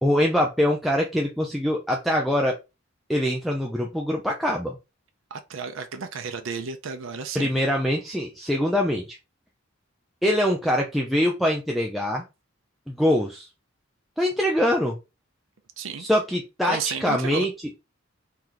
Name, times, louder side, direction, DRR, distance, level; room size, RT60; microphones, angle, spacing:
voice 1, 0.0-2.5 3.1-4.8 7.3-9.2 10.2-12.2 12.9-13.5 14.2-15.0 16.0-17.5, equal, ahead, 0.4 m, -23 dB
voice 2, 5.3-7.5 15.8-16.1 16.6-17.5, right 6 dB, 65° right, 0.5 m, -32 dB
3.2 x 2.9 x 3.8 m
head